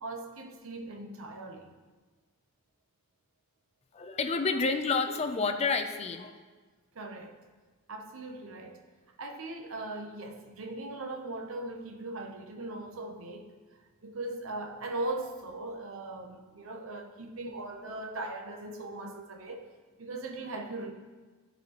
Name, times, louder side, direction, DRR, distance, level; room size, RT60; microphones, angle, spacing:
voice 1, 0.0-1.7 6.9-7.3 7.9-8.8 9.2-13.5 14.0-19.6 20.0-20.9, right 2 dB, 70° right, 3 dB, 0.7 m, -39 dB
voice 2, 3.9-6.4, left 4 dB, 30° left, 7 dB, 0.4 m, -29 dB
12.0 x 4.1 x 2.9 m, 1.4 s
head